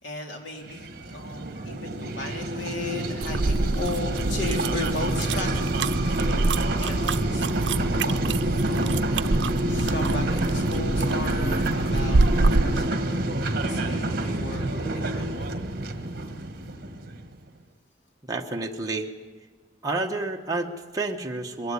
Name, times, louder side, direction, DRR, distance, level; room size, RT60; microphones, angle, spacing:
voice 1, 0.0-6.2 6.6-8.2 8.6-12.2 12.6-13.2 13.6-15.5 16.5-17.3, left 2 dB, 80° left, 1 dB, 3.7 m, -36 dB
sound 1, 0.7-17.3, right 1 dB, 50° right, 1.4 m, -27 dB
sound 2, 3.2-12.9, right 3 dB, 75° right, 0.6 m, -27 dB
voice 2, 18.3-19.1 19.8-21.7, right 2 dB, 20° right, 1 dB, 1.2 m, -29 dB
22.0 x 15.5 x 9.8 m, 1.4 s
head